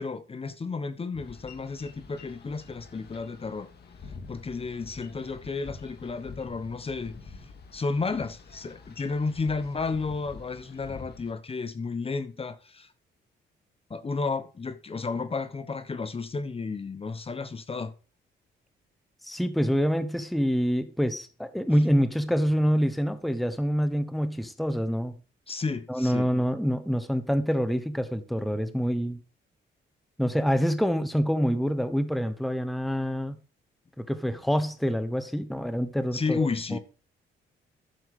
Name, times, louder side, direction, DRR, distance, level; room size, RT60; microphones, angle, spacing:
voice 1, 0.0-3.7 4.3-12.9 13.9-17.9 25.5-26.3 36.1-36.8, left 4 dB, 30° left, 1.1 m, -32 dB
Boat Water vehicle, 1.1-11.3, left 4 dB, 55° left, 2.4 m, -47 dB
voice 2, 19.2-25.1 25.9-29.2 30.2-33.4 34.0-36.8, equal, ahead, 1.0 m, -26 dB
11.5 x 7.1 x 4.9 m
cardioid pair, 90°, 20 cm